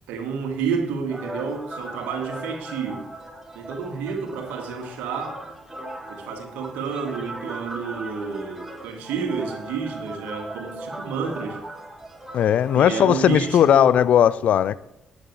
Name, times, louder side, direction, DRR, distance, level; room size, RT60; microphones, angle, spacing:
voice 1, 0.1-3.1 3.6-5.4 6.1-11.6 12.7-14.0, right 5 dB, 65° right, 2.0 m, -30 dB
sound 1, 1.1-13.5, right 1 dB, 10° right, 3.4 m, -38 dB
voice 2, 12.3-14.8, left 10 dB, 55° left, 0.4 m, -17 dB
18.5 x 8.0 x 3.3 m
figure-of-eight pair, 40°, 3 cm